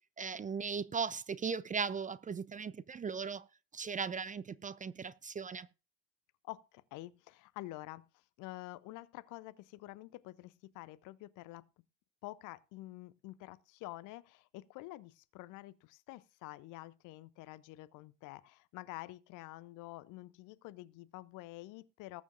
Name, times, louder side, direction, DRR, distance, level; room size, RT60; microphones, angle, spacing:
voice 1, 0.2-3.4 3.7-5.7, right 5 dB, 20° right, 0.6 m, -38 dB
voice 2, 6.4-11.7 12.2-22.2, left 18 dB, 50° left, 0.7 m, -48 dB
19.5 x 7.2 x 2.5 m
figure-of-eight pair, 55°, 39 cm